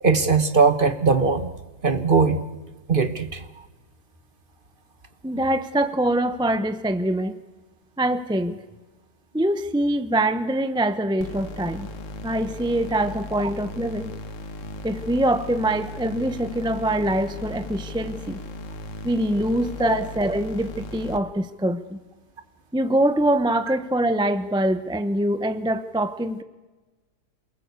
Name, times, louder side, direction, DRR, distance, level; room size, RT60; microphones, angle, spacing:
voice 1, 0.0-1.5 1.8-2.4 2.9-3.4 19.8-20.1, right 4 dB, 35° right, 11 dB, 1.4 m, -20 dB
voice 2, 5.2-7.4 8.0-8.6 9.3-11.9 12.2-14.1 14.8-18.4 19.0-22.0 22.7-26.4, right 1 dB, 5° right, 11 dB, 0.7 m, -24 dB
sound 1, 11.2-21.2, left 2 dB, 50° left, 1.5 m, -37 dB
28.0 x 19.5 x 8.3 m, 1.2 s
omnidirectional pair, 1.7 m